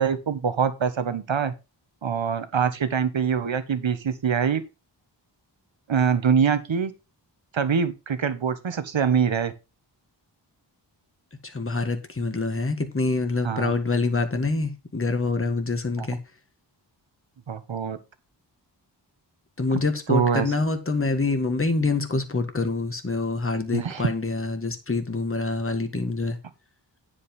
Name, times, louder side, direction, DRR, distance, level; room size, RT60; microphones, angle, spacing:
voice 1, 0.0-1.5 2.0-4.6 5.9-6.9 7.5-9.5 13.4-13.7 16.0-16.1 17.5-18.0 19.7-19.8 20.1-20.5 23.7-24.1, right 7 dB, 85° right, 1.3 m, -24 dB
voice 2, 11.5-16.2 19.6-26.4, left 3 dB, 30° left, 1.7 m, -26 dB
9.9 x 5.3 x 5.4 m
wide cardioid pair, 90°, 45 cm